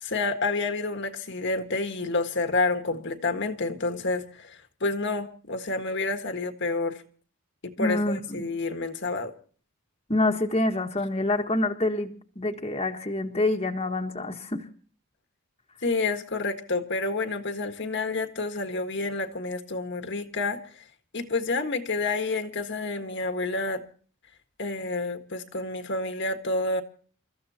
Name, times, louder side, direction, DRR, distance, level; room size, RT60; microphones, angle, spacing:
voice 1, 0.0-7.0 7.6-9.3 15.8-20.7 21.1-23.8 24.6-26.8, left 3 dB, 60° left, 1.6 m, -29 dB
voice 2, 7.8-8.5 10.1-14.7, left 2 dB, 30° left, 1.5 m, -27 dB
29.0 x 14.5 x 2.8 m
head